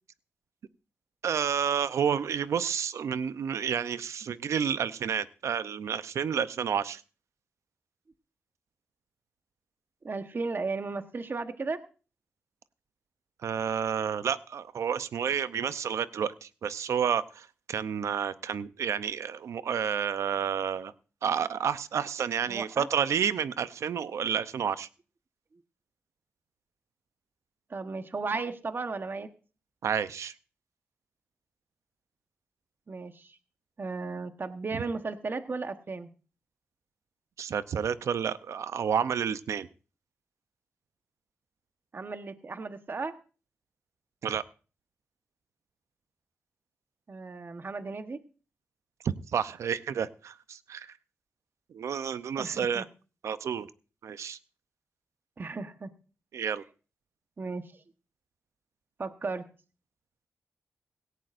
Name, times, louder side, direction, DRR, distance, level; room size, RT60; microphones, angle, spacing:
voice 1, 1.2-7.0 13.4-20.9 21.2-24.9 29.8-30.3 34.7-34.8 37.4-39.7 44.2-44.4 49.0-50.9 51.7-52.8 53.2-53.7 54.0-54.4 56.3-56.6, right 7 dB, 85° right, 14 dB, 0.6 m, -30 dB
voice 2, 10.0-11.8 22.5-22.9 27.7-29.3 32.9-33.4 33.8-36.1 41.9-43.1 47.1-48.2 52.4-52.8 55.4-55.9 57.4-57.8 59.0-59.4, right 4 dB, 45° right, 8 dB, 1.1 m, -35 dB
17.5 x 16.0 x 2.6 m, 0.36 s
cardioid pair, 65°, 5 cm